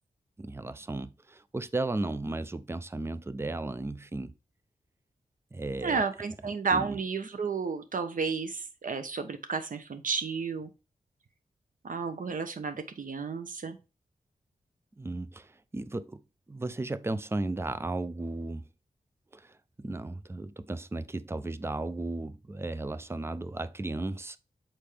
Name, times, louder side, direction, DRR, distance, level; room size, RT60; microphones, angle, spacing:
voice 1, 0.4-4.3 5.5-6.0 6.7-7.0 15.0-16.2 16.5-18.7 19.3-24.4, right 2 dB, 15° right, 0.5 m, -35 dB
voice 2, 5.8-10.7 11.8-13.8, right 5 dB, 65° right, 1.0 m, -32 dB
6.8 x 4.4 x 3.4 m
wide cardioid pair, 80°, 15 cm